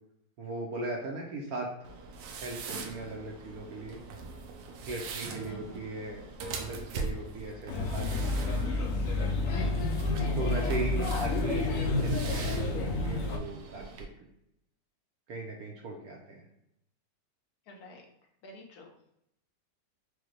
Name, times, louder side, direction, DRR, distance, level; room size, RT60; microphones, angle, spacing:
voice 1, 0.4-1.7 2.3-4.0 4.8-6.2 6.6-8.9 10.4-14.1 15.3-16.5, right 3 dB, 65° right, 0 dB, 1.0 m, -38 dB
sound 1, 1.8-14.1, right 4 dB, 85° right, 1.3 m, -42 dB
voice 2, 5.4-5.9 9.9-10.4 17.7-18.0 18.4-18.9, equal, 60° left, 1 dB, 1.1 m, -49 dB
Male speech man speaking / Child speech kid speaking / Chatter, 7.7-13.4, left 2 dB, 75° left, 0.7 m, -29 dB
4.9 x 2.2 x 3.0 m, 0.79 s
omnidirectional pair, 2.0 m